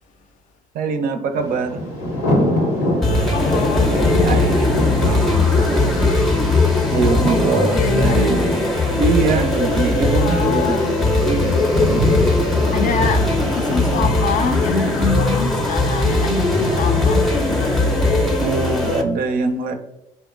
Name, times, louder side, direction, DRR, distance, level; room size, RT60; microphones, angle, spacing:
voice 1, 0.7-1.8 4.2-6.1 6.9-8.5 9.0-10.8 11.2-11.7 18.4-19.7, right 4 dB, 60° right, 0.4 m, -23 dB
Thunder, 1.4-18.4, left 1 dB, 80° left, 0.7 m, -26 dB
sound 1, 3.0-19.0, left 2 dB, ahead, 0.5 m, -19 dB
voice 2, 3.3-3.9 7.7-8.4 10.2-11.0 12.7-17.7, left 5 dB, 50° left, 0.4 m, -25 dB
2.7 x 2.1 x 2.4 m
hypercardioid pair, 55°, 17 cm